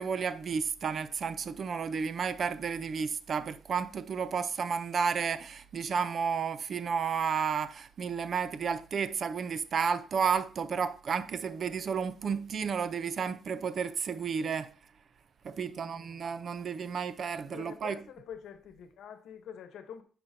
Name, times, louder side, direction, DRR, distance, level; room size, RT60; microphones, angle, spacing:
voice 1, 0.0-14.7 15.4-18.0, right 6 dB, 50° right, 0.6 m, -32 dB
voice 2, 15.6-16.4 17.5-20.0, left 8 dB, 75° left, 1.0 m, -47 dB
8.8 x 6.0 x 2.7 m
cardioid pair, 90°, 0 cm